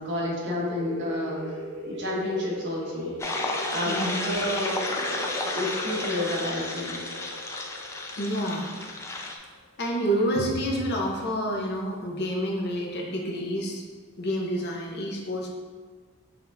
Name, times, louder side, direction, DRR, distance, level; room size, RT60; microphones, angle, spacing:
voice 1, 0.0-1.5 1.8-3.4 3.7-7.0, left 1 dB, 55° right, -3 dB, 1.0 m, -31 dB
sound 1, 0.6-10.0, equal, 80° right, 1.4 m, -39 dB
sound 2, 3.2-9.3, left 2 dB, 15° left, 0.3 m, -32 dB
voice 2, 3.9-4.3 8.2-8.7 9.8-13.8 14.2-15.5, equal, 50° left, -1 dB, 0.7 m, -28 dB
5.7 x 3.4 x 2.6 m, 1.5 s
head